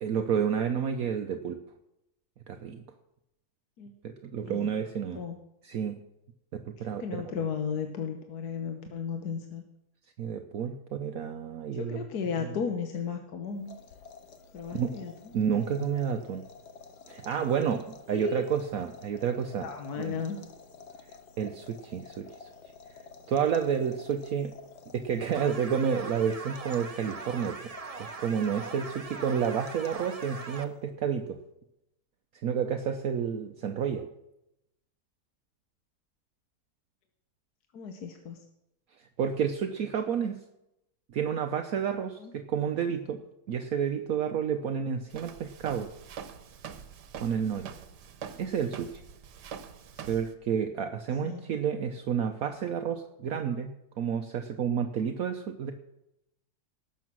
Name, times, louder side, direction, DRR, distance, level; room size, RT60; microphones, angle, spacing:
voice 1, 0.0-1.6 2.5-2.8 4.0-5.2 5.6-6.0 6.5-7.2 10.2-12.1 12.4-12.5 14.7-15.0 15.3-16.4 17.1-19.7 20.0-20.2 21.4-22.5 23.3-24.5 24.9-27.7 28.0-31.4 32.4-34.1 39.0-40.4 41.1-43.2 43.5-45.9 47.2-47.7 48.4-49.0 50.1-53.7 54.0-55.7, right 7 dB, 65° right, 6 dB, 1.2 m, -30 dB
voice 2, 7.0-9.6 11.7-13.7 14.5-15.1 18.1-18.5 19.6-20.4 37.7-38.4 42.2-42.3 50.0-50.1 51.2-51.4, left 6 dB, 70° left, 5 dB, 1.6 m, -35 dB
sound 1, 13.5-30.9, left 5 dB, 90° left, 1.8 m, -51 dB
sound 2, 25.3-30.6, right 4 dB, 35° right, 0.6 m, -41 dB
Walk footsteps, 45.1-50.3, right 7 dB, 90° right, 1.5 m, -44 dB
18.0 x 7.3 x 6.2 m, 0.87 s
omnidirectional pair, 1.7 m